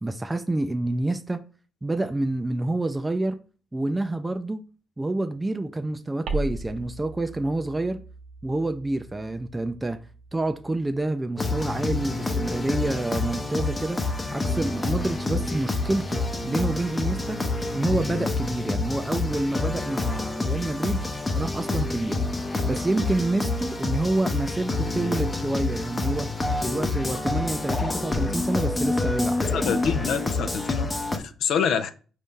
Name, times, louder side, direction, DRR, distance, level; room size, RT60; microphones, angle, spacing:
voice 1, 0.0-1.4 1.8-3.4 3.7-4.6 5.0-8.0 8.4-10.0 10.3-17.4 17.7-21.0 21.3-22.3 22.6-26.4 26.6-29.4, right 2 dB, 15° right, 0.3 m, -28 dB
sound 1, 6.3-11.1, right 2 dB, 75° right, 0.6 m, -37 dB
sound 2, 11.4-31.2, left 2 dB, 25° left, 0.7 m, -27 dB
voice 2, 29.5-30.9 31.1-31.9, left 7 dB, 75° left, 0.4 m, -26 dB
4.5 x 2.6 x 3.6 m
cardioid pair, 90°, 0 cm